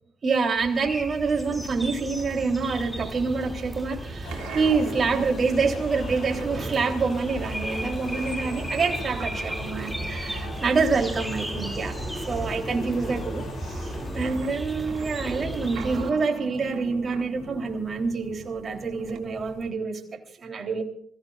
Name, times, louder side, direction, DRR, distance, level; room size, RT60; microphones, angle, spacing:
voice 1, 0.2-20.8, right 4 dB, 40° right, 3.4 m, -27 dB
sound 1, 0.6-16.1, right 1 dB, ahead, 2.6 m, -34 dB
sound 2, 1.6-19.7, right 7 dB, 85° right, 2.3 m, -43 dB
sound 3, 4.2-14.3, left 3 dB, 85° left, 5.6 m, -42 dB
26.5 x 16.0 x 2.5 m
cardioid pair, 90°, 0 cm